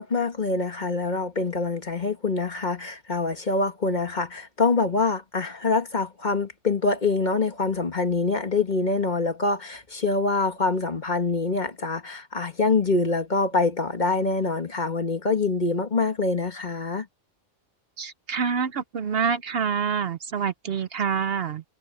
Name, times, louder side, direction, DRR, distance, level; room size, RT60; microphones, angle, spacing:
voice 1, 0.0-17.1, left 3 dB, 40° left, 1.8 m, -25 dB
voice 2, 18.0-21.6, right 6 dB, 60° right, 0.9 m, -27 dB
omnidirectional pair, 1.2 m